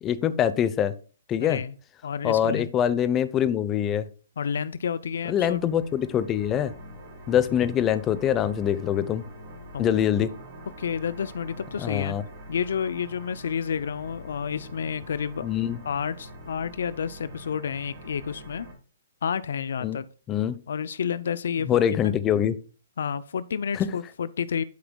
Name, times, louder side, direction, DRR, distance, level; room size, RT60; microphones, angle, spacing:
voice 1, 0.0-0.9 1.3-1.6 2.2-4.1 5.3-6.7 7.3-9.2 9.8-10.3 11.8-12.2 15.4-15.8 19.8-20.0 20.3-20.6 21.7-22.6 23.7-23.9, left 9 dB, 20° left, 0.7 m, -24 dB
voice 2, 1.4-1.7 2.0-2.7 4.4-5.6 9.7-9.8 10.8-12.2 12.5-15.5 15.8-18.7 19.2-20.1 20.7-22.1 23.0-24.6, left 7 dB, 70° left, 0.5 m, -30 dB
sound 1, 5.0-18.7, equal, 40° right, 4.4 m, -45 dB
11.5 x 5.9 x 2.3 m
hypercardioid pair, 135°, 0 cm